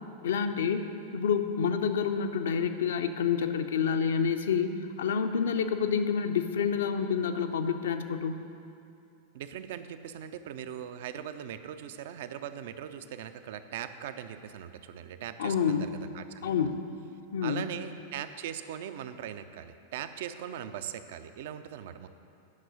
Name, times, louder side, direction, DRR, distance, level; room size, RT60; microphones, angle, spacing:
voice 1, 0.2-0.9 1.1-4.7 5.0-8.4 15.4-15.9 16.4-16.8 17.3-17.6, left 7 dB, 60° left, 7 dB, 0.5 m, -28 dB
voice 2, 9.3-16.5 17.4-22.1, right 9 dB, 55° right, 11 dB, 0.4 m, -40 dB
9.5 x 6.0 x 6.3 m, 2.5 s
figure-of-eight pair, 90°, 0 cm